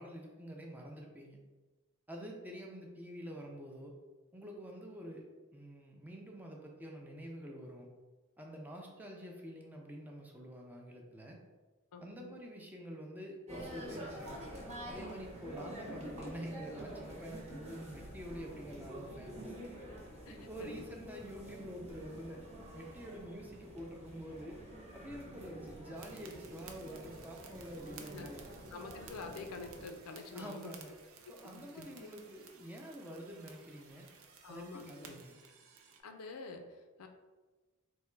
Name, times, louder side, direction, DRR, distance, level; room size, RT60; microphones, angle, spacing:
voice 1, 0.0-1.4 2.1-3.9 4.3-7.9 8.4-11.4 12.0-14.6 14.9-19.6 20.3-22.5 22.7-24.6 24.9-28.4 30.3-30.9 31.3-34.1 34.5-35.4, equal, 10° right, 0 dB, 0.4 m, -47 dB
voice 2, 11.9-12.4 19.9-20.0 20.2-20.8 28.1-28.3 28.7-30.7 31.2-32.1 34.4-35.2 36.0-37.1, left 3 dB, 80° left, 5 dB, 0.4 m, -47 dB
sound 1, 13.5-29.9, equal, 30° right, 1.0 m, -48 dB
sound 2, 25.9-36.0, right 6 dB, 65° right, 0.5 m, -57 dB
3.5 x 2.2 x 4.2 m, 1.3 s
head